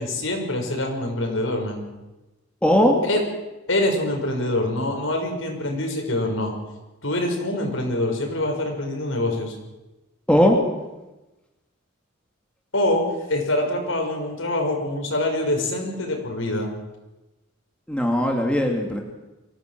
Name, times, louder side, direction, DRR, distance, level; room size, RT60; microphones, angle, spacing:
voice 1, 0.0-1.9 3.0-3.2 3.7-6.5 7.0-9.5 12.7-16.7, left 1 dB, 75° left, 2 dB, 5.9 m, -25 dB
voice 2, 2.6-3.0 10.3-10.6 17.9-19.0, equal, 5° left, 1 dB, 2.6 m, -18 dB
24.5 x 17.0 x 7.7 m, 1.0 s
head